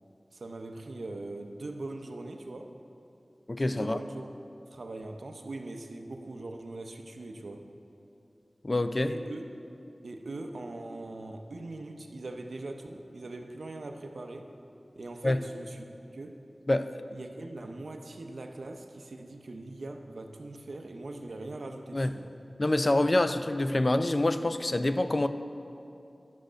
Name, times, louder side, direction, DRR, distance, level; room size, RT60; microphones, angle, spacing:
voice 1, 0.3-2.8 3.7-4.3 4.7-7.6 9.1-9.5 10.0-14.5 15.0-15.9 16.1-16.4 17.1-22.3, right 2 dB, 85° right, 5 dB, 0.6 m, -41 dB
voice 2, 3.5-4.0 8.6-9.1 15.2-15.4 16.7-16.9 21.9-22.1 22.6-25.3, left 1 dB, 40° left, 10 dB, 0.4 m, -26 dB
10.5 x 6.4 x 5.1 m, 2.7 s
wide cardioid pair, 70°, 0 cm